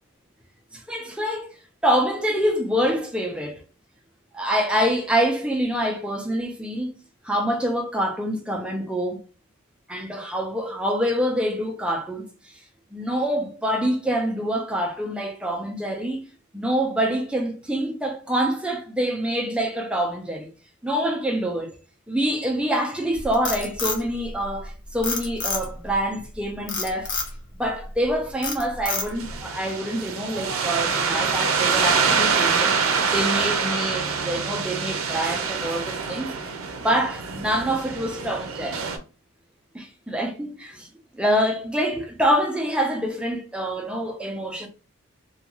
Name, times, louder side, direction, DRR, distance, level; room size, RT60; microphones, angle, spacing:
voice 1, 0.7-1.6 1.8-3.6 4.3-6.9 7.2-9.2 9.9-12.6 12.9-16.2 16.5-20.5 20.8-21.7 22.1-27.1 27.6-36.6 36.8-38.8 39.7-40.9 41.1-44.7, equal, 5° right, 0.4 m, -26 dB
Frog, 23.1-24.7 25.0-25.9 26.7-27.3 27.8-28.1 28.4-29.3, left 4 dB, 60° left, 0.8 m, -28 dB
sound 1, 29.2-39.0, right 5 dB, 75° right, 0.5 m, -25 dB
2.4 x 2.3 x 2.9 m
head